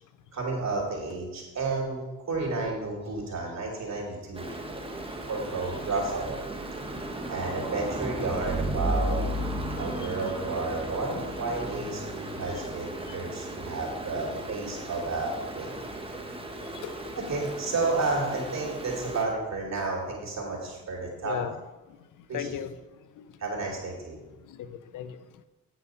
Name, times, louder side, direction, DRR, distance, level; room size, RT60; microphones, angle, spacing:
voice 1, 0.3-2.0 2.3-4.5 5.3-6.4 7.3-9.2 9.8-15.7 17.2-21.4 22.3-22.5 23.4-24.2, right 3 dB, 60° right, -2 dB, 2.8 m, -31 dB
Stream, 4.4-19.2, right 1 dB, 15° right, 1.6 m, -35 dB
voice 2, 9.8-10.3 12.5-12.7 13.1-13.2 16.8-16.9 21.2-21.6 22.3-22.8 23.2-23.3 24.5-25.2, left 9 dB, 80° left, 12 dB, 0.7 m, -37 dB
9.6 x 6.0 x 5.6 m, 1.1 s
cardioid pair, 70°, 31 cm